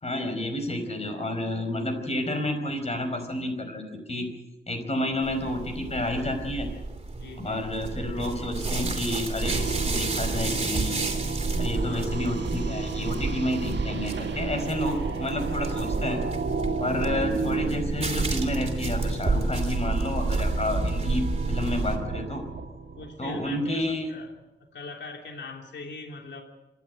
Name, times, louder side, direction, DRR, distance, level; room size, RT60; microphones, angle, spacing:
voice 1, 0.0-4.3 4.7-6.7 7.4-11.1 11.5-16.2 16.8-22.4 23.2-24.1, left 1 dB, 35° left, 6 dB, 4.9 m, -30 dB
sound 1, 5.2-22.0, right 3 dB, 35° right, 3.2 m, -31 dB
voice 2, 7.1-8.1 11.7-12.1 17.1-17.2 22.9-24.3 24.7-26.4, left 3 dB, 75° left, 2 dB, 3.1 m, -41 dB
sound 2, 9.4-23.5, right 3 dB, 85° right, 2.4 m, -32 dB
26.5 x 12.0 x 9.0 m, 1.0 s
wide cardioid pair, 125°, 18 cm